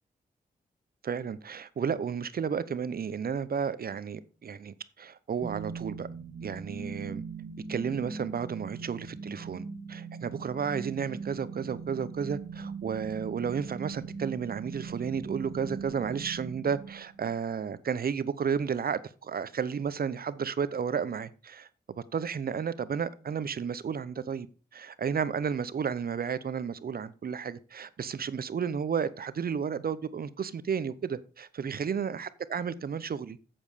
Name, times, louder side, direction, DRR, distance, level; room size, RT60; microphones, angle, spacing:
voice 1, 1.0-6.1 6.4-7.2 7.7-21.7 22.0-24.5 24.7-33.4, right 7 dB, 60° right, 0.8 m, -32 dB
sound 1, 5.4-17.4, right 5 dB, 30° right, 1.4 m, -41 dB
8.4 x 7.2 x 5.1 m
supercardioid pair, 45°, 18 cm